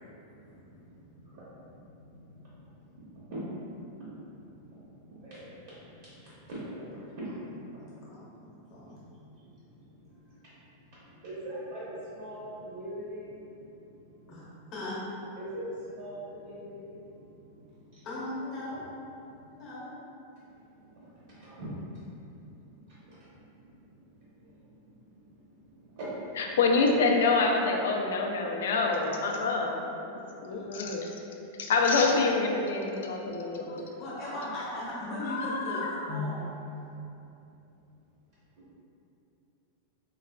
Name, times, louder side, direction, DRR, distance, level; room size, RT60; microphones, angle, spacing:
voice 1, 0.3-7.7 8.8-8.9 9.3-9.9 10.3-10.6 11.0-14.3 15.4-17.5 17.8-18.1 19.2-19.4 20.4-22.3 22.6-23.3 23.7-23.9 24.4-24.6 24.9-26.4 30.3-30.7 36.1-36.3, equal, 50° right, -9 dB, 0.7 m, -43 dB
voice 2, 7.7-9.0 14.3-15.0 18.0-18.8 19.4-19.9 30.5-30.6 34.0-36.5, left 1 dB, 30° left, -8 dB, 0.9 m, -38 dB
voice 3, 26.4-29.9 30.4-31.1 31.6-33.8 35.3-36.1, left 3 dB, 75° left, 1 dB, 0.4 m, -26 dB
3.8 x 2.4 x 2.2 m, 2.8 s
supercardioid pair, 180°, 0 cm